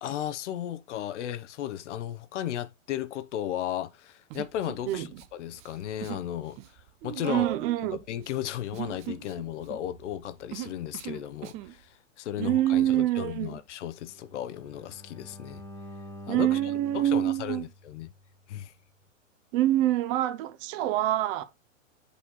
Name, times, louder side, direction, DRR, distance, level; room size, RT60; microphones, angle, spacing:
voice 1, 0.0-5.1 5.4-6.6 7.0-7.5 7.8-11.9 12.2-15.6 16.3-16.6 16.9-18.1 18.5-18.7, left 11 dB, 65° left, 0.9 m, -35 dB
Human voice, 4.3-5.3 5.5-6.3 6.5-11.7, right 12 dB, 20° right, 0.3 m, -40 dB
voice 2, 4.9-5.2 7.3-8.0 12.4-13.6 16.3-17.7 19.5-21.4, right 13 dB, 45° right, 1.1 m, -26 dB
Bowed string instrument, 14.0-18.1, equal, 5° left, 1.6 m, -47 dB
8.4 x 4.3 x 4.2 m
hypercardioid pair, 120°, 39 cm